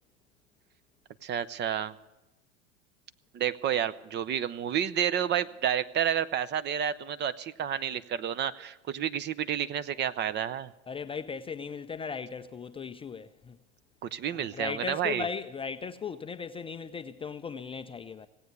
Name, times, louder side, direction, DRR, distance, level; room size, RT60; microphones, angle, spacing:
voice 1, 1.2-2.0 3.3-10.7 14.0-15.3, right 9 dB, 30° right, 0.6 m, -30 dB
voice 2, 10.9-13.6 14.3-18.3, left 5 dB, 15° left, 0.4 m, -37 dB
17.5 x 8.5 x 8.0 m
hypercardioid pair, 90°, 34 cm